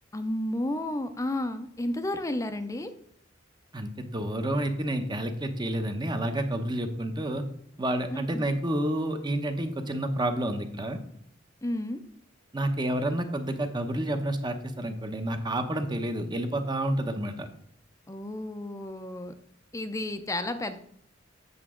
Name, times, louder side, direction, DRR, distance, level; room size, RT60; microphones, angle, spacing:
voice 1, 0.1-2.9 8.1-8.4 11.6-12.0 18.1-19.3 19.7-20.8, left 1 dB, 15° left, 9 dB, 0.5 m, -32 dB
voice 2, 3.7-7.5 7.8-11.0 12.5-17.5, right 1 dB, 25° right, 7 dB, 0.8 m, -29 dB
8.1 x 6.8 x 3.7 m, 0.65 s
head